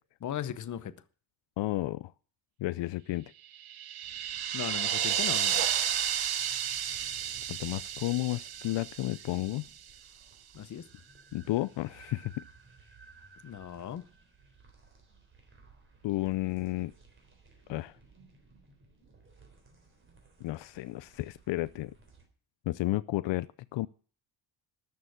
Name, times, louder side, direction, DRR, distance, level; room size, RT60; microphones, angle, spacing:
voice 1, 0.2-0.9 4.5-5.6 10.5-10.9 13.4-14.0, left 9 dB, 40° left, 0.8 m, -37 dB
voice 2, 1.6-2.1 2.6-3.3 7.5-9.6 11.3-12.3 16.0-16.9 17.7-17.9 20.4-21.9 22.7-23.5 23.7-23.9, left 17 dB, 65° left, 0.5 m, -32 dB
sound 1, 3.5-9.7, right 10 dB, 50° right, 1.1 m, -32 dB
sound 2, 4.0-22.3, right 4 dB, 25° right, 3.6 m, -57 dB
13.0 x 6.9 x 9.8 m
cardioid pair, 180°, 47 cm